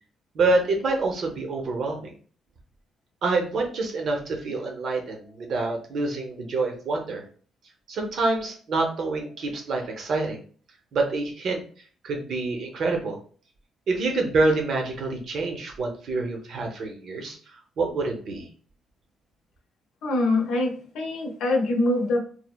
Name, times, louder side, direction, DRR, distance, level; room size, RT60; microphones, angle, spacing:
voice 1, 0.3-2.1 3.2-7.2 7.9-10.4 10.9-11.6 12.0-13.2 13.9-17.4 17.8-18.5, right 3 dB, 65° right, 2 dB, 0.7 m, -26 dB
voice 2, 20.0-22.2, left 2 dB, 85° left, 1 dB, 0.6 m, -24 dB
3.1 x 2.0 x 2.2 m, 0.43 s
cardioid pair, 90°, 0 cm